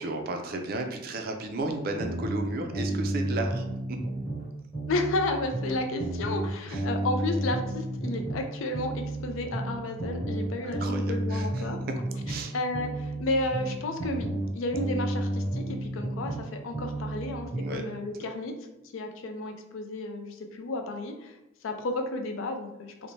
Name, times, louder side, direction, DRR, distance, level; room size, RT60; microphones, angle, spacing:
voice 1, 0.0-4.0 6.7-6.8 10.6-12.0 12.3-12.5 17.5-17.8, right 2 dB, 45° right, 4 dB, 0.3 m, -34 dB
sound 1, 2.0-4.5 4.7-8.5 8.7-12.5 12.7-16.5 16.7-17.8, right 1 dB, 35° left, 1.3 m, -32 dB
voice 2, 4.9-11.8 12.5-18.5 18.9-21.3 21.6-23.1, left 2 dB, 75° left, 5 dB, 0.4 m, -32 dB
3.0 x 2.1 x 2.5 m, 0.91 s
head